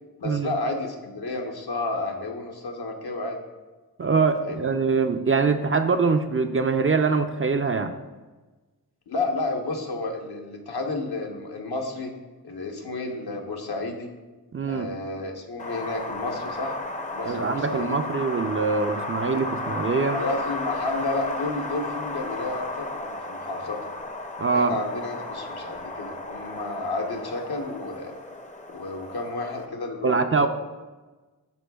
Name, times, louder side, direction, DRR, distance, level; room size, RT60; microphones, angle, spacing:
voice 1, 0.2-3.4 4.4-4.7 9.1-12.1 12.4-14.1 14.7-16.8 17.1-18.0 20.1-23.8 24.5-28.1 28.7-30.5, left 2 dB, 70° left, 2 dB, 0.9 m, -31 dB
voice 2, 4.0-7.9 14.5-14.9 17.2-20.2 24.4-24.8 30.0-30.5, right 4 dB, 35° right, 7 dB, 0.4 m, -23 dB
Wind, 15.6-29.7, left 2 dB, 20° left, 0.5 m, -34 dB
11.5 x 4.1 x 2.3 m, 1.2 s
wide cardioid pair, 55°, 39 cm